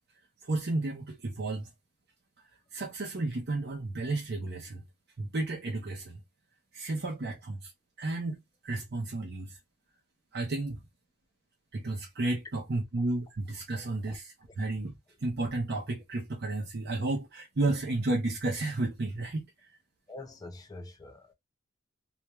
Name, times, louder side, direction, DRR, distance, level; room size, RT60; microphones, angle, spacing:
voice 1, 0.4-1.7 2.7-4.8 5.2-6.2 6.7-7.7 8.0-8.4 8.6-9.6 10.3-10.8 11.7-19.7, right 2 dB, 50° right, 0.7 m, -32 dB
voice 2, 13.7-14.2 20.1-21.3, left 2 dB, 20° left, 0.5 m, -46 dB
2.5 x 2.2 x 3.0 m
head